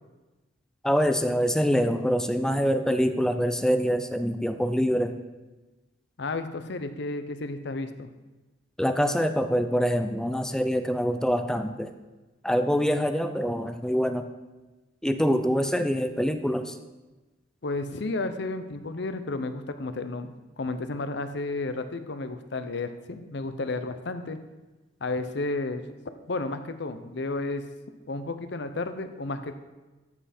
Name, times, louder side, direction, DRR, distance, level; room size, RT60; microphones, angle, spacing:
voice 1, 0.8-5.1 8.8-11.9 12.4-14.3 15.0-16.8, equal, 5° left, 8 dB, 0.4 m, -25 dB
voice 2, 6.2-8.1 17.6-24.4 25.0-25.8 26.3-27.6 28.1-29.5, left 2 dB, 65° left, 9 dB, 0.7 m, -32 dB
13.0 x 5.7 x 4.2 m, 1.2 s
head